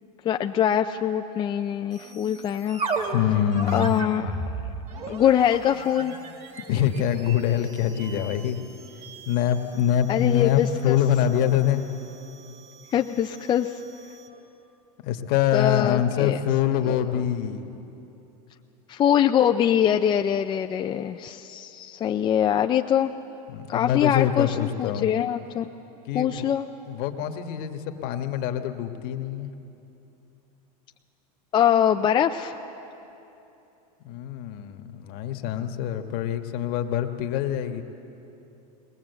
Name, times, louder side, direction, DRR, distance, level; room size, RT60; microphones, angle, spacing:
voice 1, 0.2-2.8 3.7-4.3 5.1-6.2 10.1-11.0 12.9-13.7 15.5-16.4 16.9-17.2 18.9-23.1 23.7-25.7 26.1-26.7 31.5-32.5, left 9 dB, 20° left, 5 dB, 0.4 m, -23 dB
sound 1, 1.9-14.4, right 3 dB, 30° right, 2.1 m, -37 dB
voice 2, 3.1-3.9 6.7-8.6 9.2-11.8 15.0-17.7 23.5-25.1 26.1-26.5 26.9-29.5 34.0-37.8, left 10 dB, 50° left, 6 dB, 1.4 m, -25 dB
21.0 x 20.0 x 8.1 m, 2.9 s
supercardioid pair, 140°, 21 cm